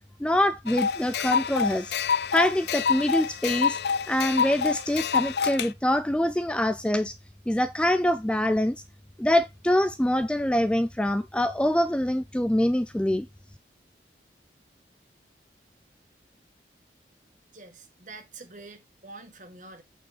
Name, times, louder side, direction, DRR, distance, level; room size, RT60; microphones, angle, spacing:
voice 1, 0.2-1.9 2.3-3.8 4.1-7.1 7.5-8.8 9.2-13.3, left 1 dB, 5° left, 0.3 m, -24 dB
sound 1, 0.7-5.7, left 6 dB, 70° left, 0.5 m, -27 dB
voice 2, 17.5-19.8, right 3 dB, 45° right, 1.9 m, -46 dB
8.7 x 5.4 x 4.1 m
head